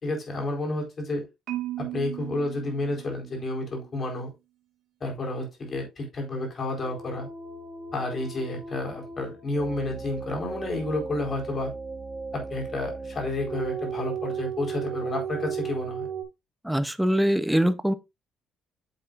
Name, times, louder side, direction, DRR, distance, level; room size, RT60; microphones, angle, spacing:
voice 1, 0.0-1.2 1.8-4.3 5.0-7.3 7.9-11.7 12.3-16.1, left 2 dB, 30° left, 4.3 m, -31 dB
Marimba xylophone, 1.5-3.7, right 14 dB, 75° right, 1.8 m, -36 dB
sound 1, 6.8-16.2, right 5 dB, 20° right, 3.9 m, -36 dB
voice 2, 16.6-17.9, equal, 5° right, 0.7 m, -23 dB
9.2 x 7.8 x 2.5 m
cardioid pair, 155°, 0 cm